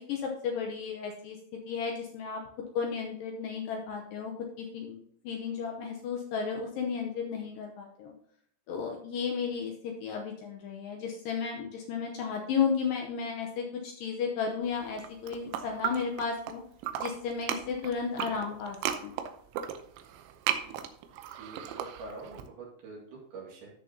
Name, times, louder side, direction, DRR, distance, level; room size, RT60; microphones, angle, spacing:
voice 1, 0.0-2.4 2.7-4.3 4.6-5.0 5.2-8.1 8.7-16.6 17.0-18.8 19.0-19.1, left 6 dB, 90° left, 1 dB, 1.9 m, -33 dB
sound 1, 14.9-16.5 16.8-22.4, right 10 dB, 85° right, 3.1 m, -35 dB
voice 2, 21.4-23.7, right 4 dB, 65° right, -3 dB, 3.8 m, -45 dB
14.0 x 6.5 x 2.8 m, 0.67 s
omnidirectional pair, 5.2 m